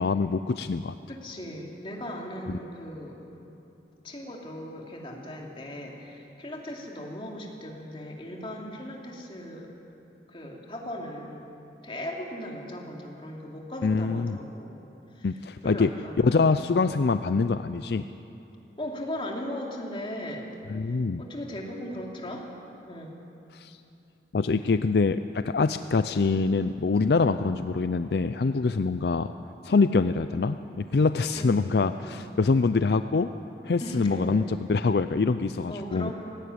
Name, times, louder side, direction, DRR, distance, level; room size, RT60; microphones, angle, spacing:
voice 1, 0.0-0.9 13.8-14.4 15.2-15.9 16.2-18.0 20.7-21.2 23.5-23.8 24.3-29.3 29.6-33.3 33.6-36.1, left 4 dB, 65° left, 11 dB, 0.5 m, -24 dB
voice 2, 1.1-3.3 4.0-9.8 10.3-11.5 11.8-14.8 15.1-15.3 15.6-16.5 18.8-20.5 21.2-22.5 22.9-23.2 31.3-31.6 32.0-32.2 33.8-34.4 35.7-36.1, left 1 dB, 30° left, 0 dB, 2.8 m, -38 dB
18.0 x 17.0 x 9.7 m, 2.8 s
head